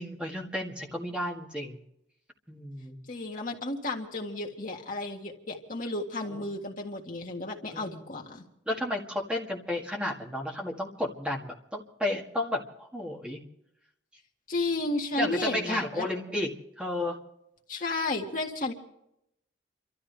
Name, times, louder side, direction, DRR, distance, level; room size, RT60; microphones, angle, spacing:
voice 1, 0.0-1.8 2.5-3.0 6.3-6.4 7.7-8.1 8.7-13.4 15.2-16.5 16.8-17.2, left 1 dB, 5° right, -1 dB, 1.8 m, -32 dB
voice 2, 3.1-8.5 14.5-16.1 17.7-18.7, left 2 dB, 45° left, 1 dB, 1.7 m, -33 dB
29.5 x 13.0 x 3.4 m, 0.81 s
head